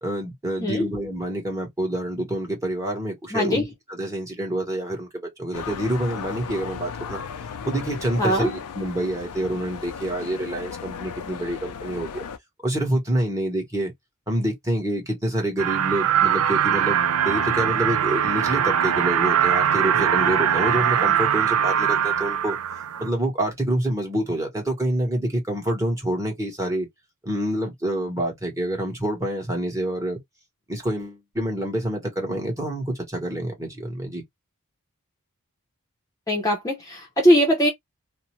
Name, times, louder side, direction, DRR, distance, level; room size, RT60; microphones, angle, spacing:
voice 1, 0.0-5.1 5.4-7.2 7.6-12.2 12.6-13.9 14.3-22.6 23.0-26.9 27.2-30.2 30.7-34.2, right 1 dB, 15° right, 1.1 m, -27 dB
voice 2, 3.3-3.7 8.2-8.5 36.3-37.7, equal, 15° left, 0.6 m, -20 dB
sound 1, 5.5-12.4, left 6 dB, 90° left, 0.4 m, -35 dB
sound 2, 15.6-23.1, right 9 dB, 75° right, 0.4 m, -21 dB
2.5 x 2.1 x 3.0 m
head